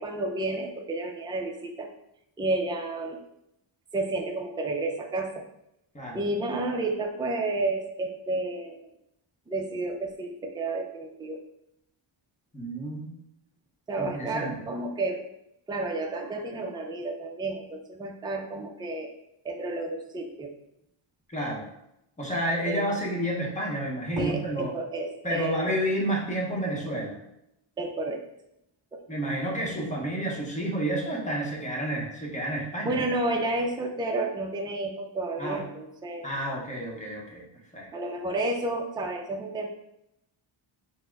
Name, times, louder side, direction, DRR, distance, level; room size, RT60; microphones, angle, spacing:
voice 1, 0.0-1.9 2.4-3.2 3.9-5.4 6.1-8.8 9.5-11.4 13.9-15.2 15.7-19.1 19.4-20.5 22.7-22.9 24.2-25.8 27.8-28.2 28.9-29.0 32.8-36.3 36.9-37.1 37.9-39.7, right 2 dB, 10° right, 2 dB, 0.4 m, -31 dB
voice 2, 12.5-13.1 14.0-14.6 21.3-21.6 22.2-24.7 25.2-27.2 29.1-33.0 35.4-35.6 36.2-37.4 37.7-37.9, right 1 dB, 15° left, -2 dB, 0.9 m, -30 dB
4.2 x 2.1 x 4.5 m, 0.82 s
wide cardioid pair, 120°, 50 cm